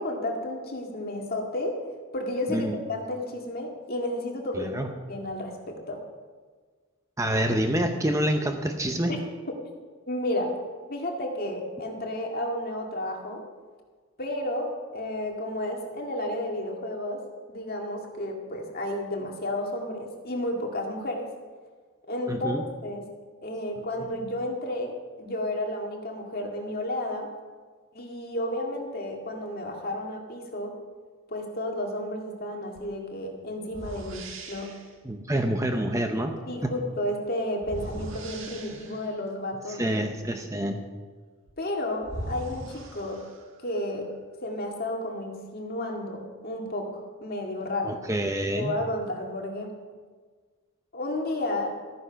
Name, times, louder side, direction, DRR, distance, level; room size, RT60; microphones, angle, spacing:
voice 1, 0.0-1.8 2.1-4.7 5.1-6.0 9.1-9.2 10.1-10.5 10.9-13.4 14.2-21.3 22.1-23.1 23.4-27.3 27.9-30.7 31.3-34.7 36.5-40.0 41.6-43.2 43.6-44.1 44.4-48.0 48.5-49.7 50.9-51.7, left 1 dB, 45° left, 1 dB, 2.0 m, -32 dB
voice 2, 4.5-4.9 7.2-9.1 22.3-22.6 35.0-36.3 36.6-36.7 39.7-40.8 47.8-48.7, right 1 dB, 15° right, 5 dB, 0.7 m, -27 dB
sound 1, 32.8-32.9 33.7-34.9 37.6-39.2 41.5-41.6 42.0-43.6, right 1 dB, 60° right, 1.6 m, -39 dB
14.0 x 9.6 x 5.8 m, 1.5 s
head